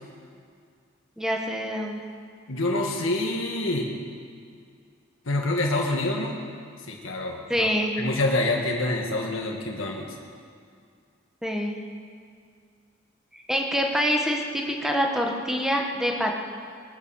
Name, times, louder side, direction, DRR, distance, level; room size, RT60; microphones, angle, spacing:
voice 1, 1.2-2.0 7.5-7.9 11.4-11.8 13.3-16.3, equal, 5° right, 1 dB, 1.5 m, -26 dB
voice 2, 2.5-3.9 5.3-6.4 6.9-7.7 8.0-10.1, left 2 dB, 75° left, 0 dB, 1.8 m, -26 dB
21.5 x 9.4 x 6.5 m, 2.2 s
head